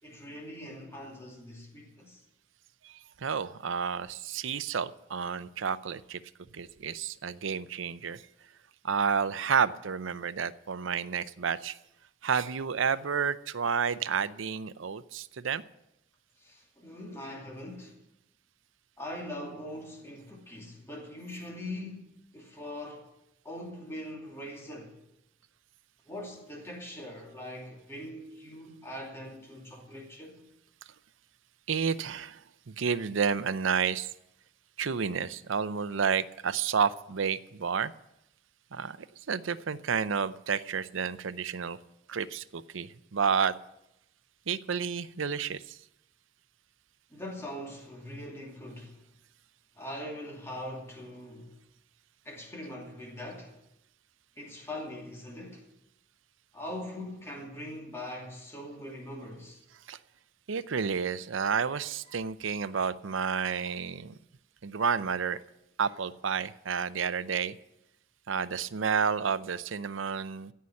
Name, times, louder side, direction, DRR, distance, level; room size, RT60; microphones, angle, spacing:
voice 1, 0.0-2.2 16.4-18.0 19.0-23.1 23.4-24.9 26.1-30.4 47.1-49.0 49.7-51.5 52.2-53.6 54.4-55.7 56.5-59.6, left 1 dB, 15° left, 2.6 m, -42 dB
voice 2, 2.8-6.2 6.5-8.2 8.8-11.8 12.2-15.6 31.7-34.1 34.8-37.9 38.7-39.0 39.3-41.8 42.1-43.5 44.5-45.8 59.9-60.0 60.5-64.2 64.6-65.4 65.8-67.6 68.3-70.5, right 6 dB, 80° right, 0.6 m, -30 dB
16.0 x 5.7 x 9.6 m
head